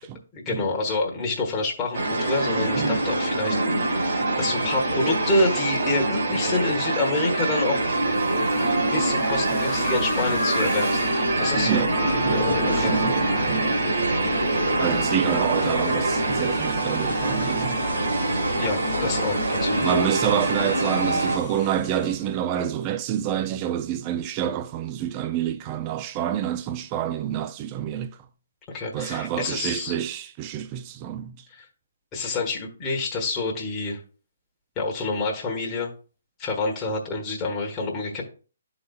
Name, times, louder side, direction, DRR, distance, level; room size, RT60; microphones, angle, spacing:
voice 1, 0.3-7.9 8.2-8.4 8.9-11.1 11.4-11.8 12.8-13.5 18.6-19.9 28.7-29.9 31.5-31.6 32.1-34.0 34.8-35.9 36.4-38.2, left 3 dB, 20° left, 1.2 m, -28 dB
sound 1, 1.9-21.4, right 2 dB, 60° right, 1.9 m, -24 dB
sound 2, 7.6-22.3, left 4 dB, 45° left, 1.4 m, -35 dB
voice 2, 11.6-13.7 14.8-17.9 19.0-19.1 19.8-28.1 28.9-31.4, right 10 dB, 25° right, 0.4 m, -28 dB
11.5 x 3.9 x 2.3 m
figure-of-eight pair, 140°, 0 cm